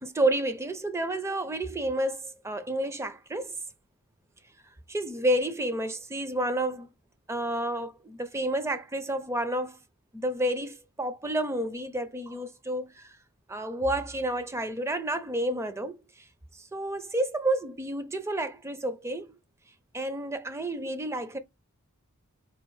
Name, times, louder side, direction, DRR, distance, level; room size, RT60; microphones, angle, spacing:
voice 1, 0.0-3.6 4.9-6.9 7.3-9.8 10.1-13.2 13.5-16.3 16.5-19.4 19.9-21.4, right 1 dB, 10° right, 0.4 m, -30 dB
4.1 x 2.4 x 3.1 m
head